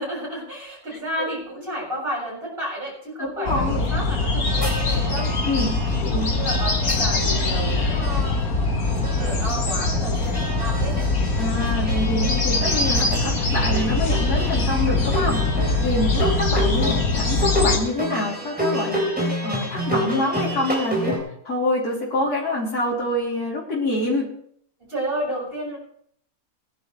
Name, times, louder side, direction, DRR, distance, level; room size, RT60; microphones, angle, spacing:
voice 1, 0.0-5.3 5.9-8.6 9.1-11.1 15.0-15.9 24.8-25.8, right 1 dB, 35° right, -9 dB, 5.9 m, -32 dB
voice 2, 3.2-3.8 5.5-6.3 11.4-21.2 21.4-24.3, left 1 dB, 90° left, -4 dB, 3.5 m, -26 dB
sound 1, 3.5-17.8, left 3 dB, 65° left, 2.2 m, -22 dB
sound 2, 4.4-21.2, right 1 dB, 5° right, 3.8 m, -30 dB
19.0 x 10.5 x 3.2 m, 0.64 s
omnidirectional pair, 1.6 m